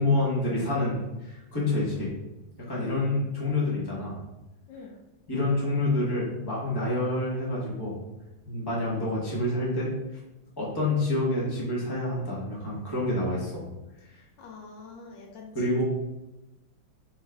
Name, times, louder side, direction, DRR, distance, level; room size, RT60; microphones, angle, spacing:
voice 1, 0.0-2.1 2.7-4.2 5.3-8.0 8.4-9.9 10.6-13.6 14.1-14.2 15.5-15.8, left 2 dB, 15° left, -7 dB, 1.2 m, -27 dB
voice 2, 2.8-3.1 4.7-5.0 14.4-15.8, left 4 dB, 75° left, 0 dB, 1.4 m, -45 dB
4.3 x 3.7 x 3.4 m, 0.99 s
omnidirectional pair, 2.1 m